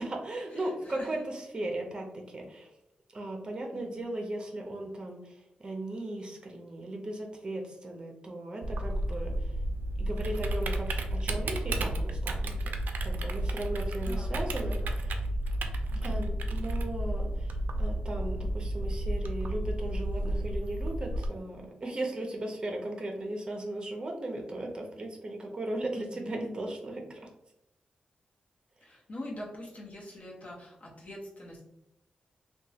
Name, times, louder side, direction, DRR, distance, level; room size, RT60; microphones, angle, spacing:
voice 1, 0.0-2.7 3.1-9.6 10.0-12.7 13.0-15.2 16.0-27.2, right 1 dB, 30° right, 1 dB, 0.6 m, -37 dB
voice 2, 0.5-1.1 3.7-4.0 13.9-14.3 14.8-15.0 15.9-16.2 26.0-26.3 28.8-31.6, left 1 dB, 50° left, -3 dB, 0.9 m, -44 dB
Typing, 8.6-21.3, right 1 dB, 75° right, 0.3 m, -32 dB
3.0 x 2.2 x 2.7 m, 0.83 s
wide cardioid pair, 125°, 3 cm